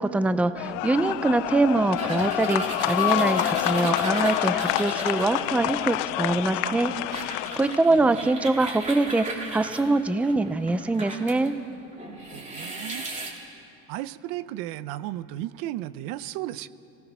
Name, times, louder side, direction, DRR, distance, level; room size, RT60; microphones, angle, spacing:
voice 1, 0.0-6.9 7.6-11.5, right 2 dB, 5° right, 11 dB, 0.5 m, -24 dB
sound 1, 0.6-7.9, left 18 dB, 90° left, 0.6 m, -27 dB
sound 2, 2.0-11.5 11.9-13.3, right 2 dB, 20° right, 3.2 m, -36 dB
voice 2, 12.3-13.1 13.9-16.7, right 14 dB, 75° right, 15 dB, 0.8 m, -34 dB
26.0 x 18.0 x 6.1 m, 2.6 s
cardioid pair, 140°, 34 cm